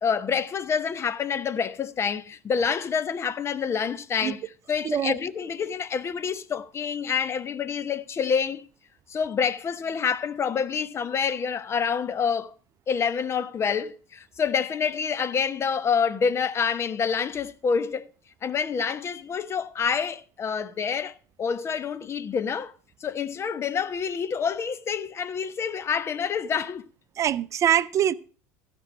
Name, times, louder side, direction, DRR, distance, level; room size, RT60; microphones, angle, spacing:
voice 1, 0.0-8.6 9.1-12.5 12.9-18.1 18.4-22.7 23.0-26.8, left 6 dB, 35° left, 0.9 m, -27 dB
voice 2, 4.8-5.2 27.2-28.1, right 10 dB, 40° right, 0.5 m, -23 dB
16.0 x 5.4 x 6.2 m
hypercardioid pair, 85°, 8 cm